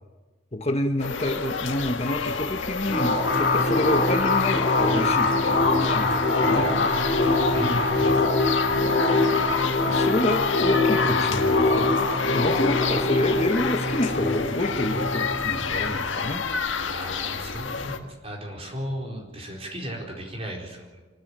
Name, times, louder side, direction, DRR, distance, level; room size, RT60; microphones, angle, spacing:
voice 1, 0.5-6.7 7.6-7.8 9.8-11.9 12.3-16.5, left 1 dB, 35° left, 5 dB, 1.2 m, -28 dB
sound 1, 1.0-18.0, left 5 dB, 85° left, 1.5 m, -29 dB
sound 2, 2.9-16.1, left 2 dB, 55° left, 3.9 m, -23 dB
voice 2, 6.4-8.2 12.5-12.6 16.9-21.0, equal, 30° right, 0 dB, 4.4 m, -36 dB
25.5 x 13.0 x 8.8 m, 1.3 s
head